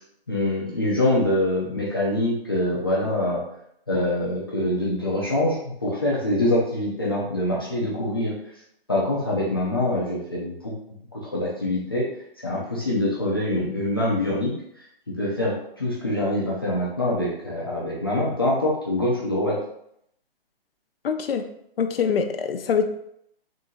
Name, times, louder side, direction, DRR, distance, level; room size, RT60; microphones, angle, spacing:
voice 1, 0.3-3.4 3.9-8.3 8.9-10.7 11.1-12.0 12.4-14.5 15.1-19.6, left 1 dB, 25° left, -6 dB, 0.5 m, -24 dB
voice 2, 21.0-21.4 21.8-22.8, left 6 dB, 70° left, 6 dB, 0.6 m, -24 dB
3.8 x 2.7 x 4.0 m, 0.73 s
hypercardioid pair, 175°, 30 cm